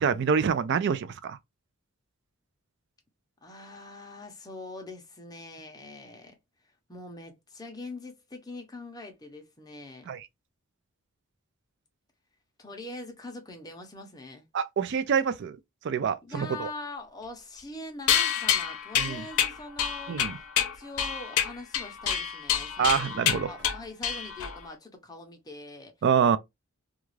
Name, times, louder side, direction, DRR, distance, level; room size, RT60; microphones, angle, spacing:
voice 1, 0.0-1.4 10.1-10.3 14.5-15.6 15.8-16.7 19.0-19.2 20.1-20.4 22.8-23.5 26.0-26.4, right 6 dB, 50° right, 0.3 m, -26 dB
voice 2, 3.4-6.4 6.9-10.1 12.6-14.5 16.2-25.9, left 2 dB, 15° left, 0.6 m, -43 dB
sound 1, 18.1-24.7, left 8 dB, 90° left, 0.6 m, -28 dB
2.4 x 2.3 x 3.1 m
head